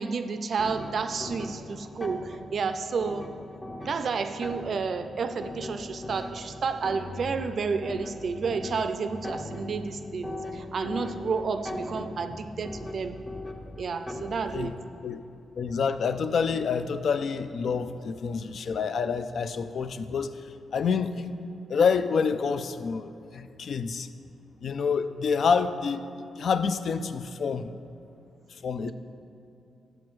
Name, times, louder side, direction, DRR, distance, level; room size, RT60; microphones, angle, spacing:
voice 1, 0.0-3.3 3.8-13.2 13.8-14.7 28.8-28.9, right 5 dB, 50° right, 9 dB, 0.4 m, -31 dB
sound 1, 0.6-14.7, left 1 dB, 15° left, 0.6 m, -39 dB
voice 2, 15.6-24.1 24.6-26.0 26.4-27.7 28.5-28.9, left 5 dB, 55° left, 11 dB, 0.3 m, -28 dB
10.5 x 7.5 x 3.1 m, 2.7 s
wide cardioid pair, 135°, 0 cm